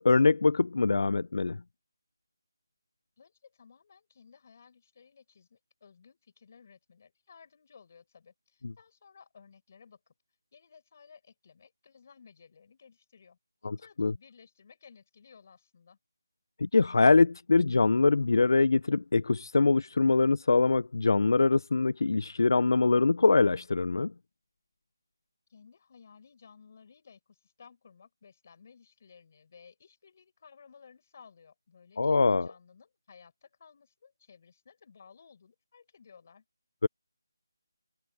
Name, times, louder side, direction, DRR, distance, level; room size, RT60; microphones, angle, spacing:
voice 1, 0.0-1.6 8.6-8.7 13.6-14.1 16.6-24.1 32.0-32.5 36.8-36.9, left 3 dB, 60° left, 0.5 m, -24 dB
voice 2, 3.2-10.1 10.5-13.4 13.8-16.0 25.5-36.4, left 6 dB, 35° left, 6.8 m, -57 dB
figure-of-eight pair, 170°, 2 cm